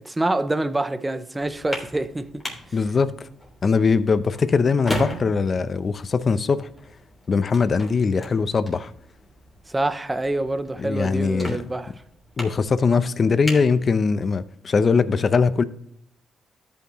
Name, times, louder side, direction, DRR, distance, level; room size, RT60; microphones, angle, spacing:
voice 1, 0.0-2.4 9.7-11.9, right 2 dB, 15° right, 0.7 m, -26 dB
sound 1, 1.4-14.5, left 1 dB, 15° left, 3.2 m, -38 dB
voice 2, 2.7-3.3 3.6-6.7 7.3-8.9 10.8-11.6 12.4-15.6, left 5 dB, 40° left, 0.7 m, -21 dB
13.5 x 5.8 x 3.1 m
cardioid pair, 90°, 0 cm